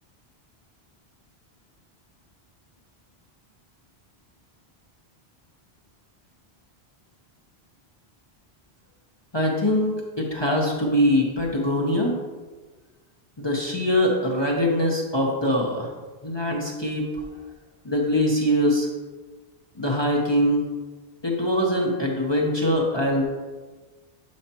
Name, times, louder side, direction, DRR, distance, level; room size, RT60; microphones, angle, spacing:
voice 1, 9.3-12.2 13.4-15.9 16.2-17.1 17.8-18.9 19.8-20.6 21.2-23.2, equal, 25° left, -2 dB, 0.9 m, -23 dB
10.5 x 5.7 x 2.9 m, 1.3 s
omnidirectional pair, 1.1 m